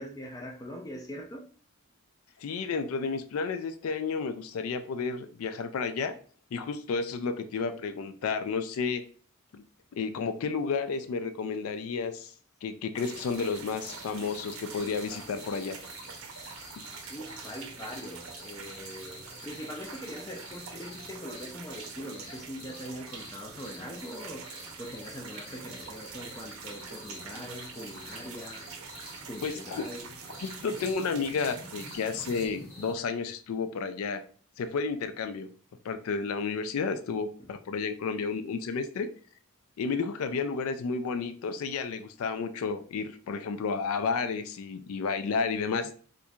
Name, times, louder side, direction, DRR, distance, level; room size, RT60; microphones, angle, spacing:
voice 1, 0.0-1.5 17.1-28.7 29.3-30.1, equal, 15° left, 0.5 m, -42 dB
voice 2, 2.4-6.1 6.5-9.0 9.5-9.6 10.0-12.3 12.6-15.8 29.4-29.9 30.4-34.2 34.6-35.5 35.8-39.1 39.8-45.9, left 5 dB, 75° left, 0.4 m, -31 dB
sound 1, 12.9-32.5, right 6 dB, 75° right, 0.6 m, -45 dB
sound 2, 13.0-32.9, left 2 dB, 45° left, 1.2 m, -49 dB
4.3 x 2.6 x 2.3 m
head